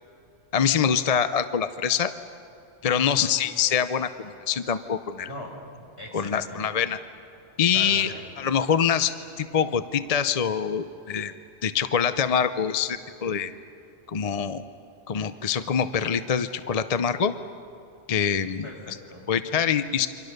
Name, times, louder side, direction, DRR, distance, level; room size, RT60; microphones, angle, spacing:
voice 1, 0.5-2.1 2.8-5.3 6.1-7.0 7.6-11.3 11.6-13.5 14.1-14.6 15.1-17.3 18.1-18.7 19.3-20.1, left 7 dB, 40° left, 11 dB, 0.6 m, -25 dB
voice 2, 2.9-3.4 5.3-6.7 7.7-8.3 18.6-19.3, left 1 dB, 70° left, -1 dB, 5.3 m, -41 dB
28.5 x 25.0 x 6.6 m, 2.7 s
omnidirectional pair, 1.2 m